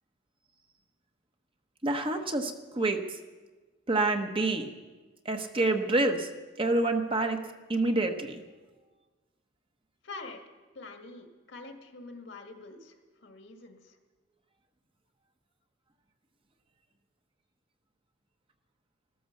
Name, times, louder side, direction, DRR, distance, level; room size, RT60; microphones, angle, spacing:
voice 1, 1.8-3.2 3.9-4.7 5.2-6.3 6.6-7.4 7.7-8.4, right 2 dB, 30° right, 5 dB, 1.1 m, -27 dB
voice 2, 10.0-10.4 10.7-14.0, left 3 dB, 70° left, 4 dB, 1.9 m, -45 dB
14.5 x 14.0 x 6.7 m, 1.3 s
head